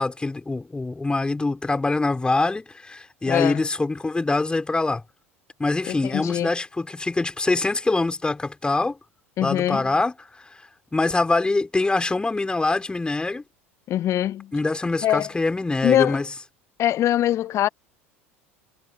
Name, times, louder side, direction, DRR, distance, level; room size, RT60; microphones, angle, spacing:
voice 1, 0.0-5.0 5.6-9.0 9.4-10.4 10.9-13.4 14.5-16.3, left 3 dB, 15° left, 5.3 m, -24 dB
voice 2, 3.3-3.6 5.9-6.5 9.4-9.9 13.9-14.5 15.0-15.3 15.8-16.2 16.8-17.7, left 12 dB, 40° left, 1.1 m, -22 dB
figure-of-eight pair, 75°, 7 cm